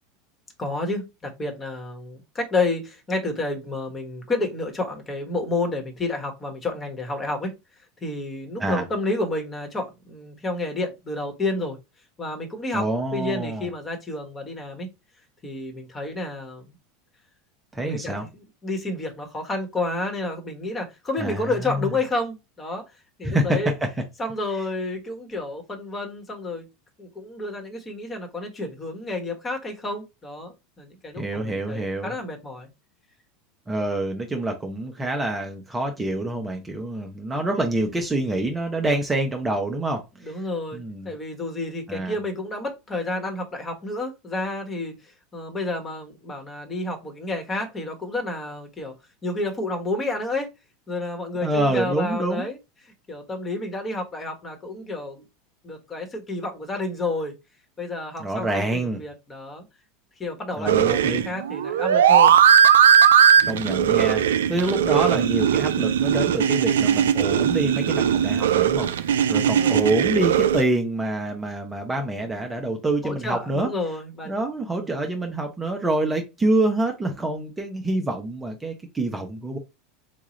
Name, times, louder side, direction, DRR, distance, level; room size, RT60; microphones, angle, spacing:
voice 1, 0.6-7.5 8.0-11.8 12.2-12.9 13.1-14.9 15.4-16.7 17.8-22.8 23.2-23.7 24.2-26.7 27.0-32.7 40.2-48.9 49.2-50.5 50.9-52.6 53.1-55.2 55.6-57.3 57.8-59.6 60.2-62.4 69.5-70.0 73.0-74.3 74.7-75.1, left 2 dB, 25° left, 1.3 m, -30 dB
voice 2, 12.7-13.7 17.7-18.3 21.2-21.9 23.2-23.6 31.2-32.1 33.7-40.0 40.7-41.2 41.9-42.2 51.4-52.5 58.2-59.0 60.6-61.2 63.4-64.2 64.5-73.7 74.3-79.6, right 2 dB, 15° right, 0.7 m, -26 dB
sound 1, 60.7-70.6, right 8 dB, 80° right, 0.3 m, -18 dB
3.8 x 2.4 x 3.1 m
hypercardioid pair, 95°, 0 cm